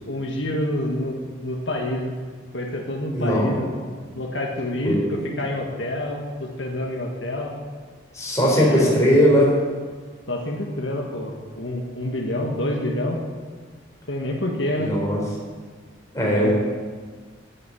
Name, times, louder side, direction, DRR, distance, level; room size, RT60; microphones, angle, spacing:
voice 1, 0.1-2.1 2.5-3.7 4.1-7.5 8.5-8.9 10.3-13.2 14.1-14.9 16.4-16.5, left 1 dB, 75° left, 0 dB, 1.6 m, -27 dB
voice 2, 3.1-3.6 4.8-5.0 8.1-9.5 14.8-15.2 16.1-16.5, equal, 15° left, -4 dB, 4.5 m, -19 dB
10.5 x 8.4 x 8.9 m, 1.5 s
head